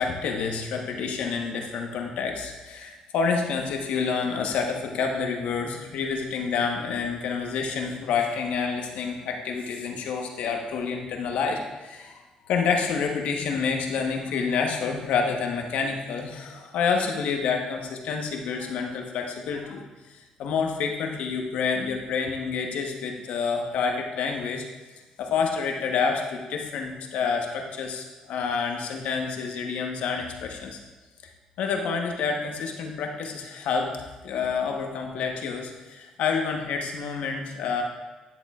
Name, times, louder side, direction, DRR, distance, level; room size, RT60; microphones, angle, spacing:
voice 1, 0.0-12.2 12.5-19.8 20.1-24.6 25.2-30.8 31.6-33.9 34.2-37.8, left 5 dB, 75° left, 2 dB, 1.0 m, -28 dB
10.5 x 7.1 x 2.4 m, 1.2 s
cardioid pair, 80°, 2 cm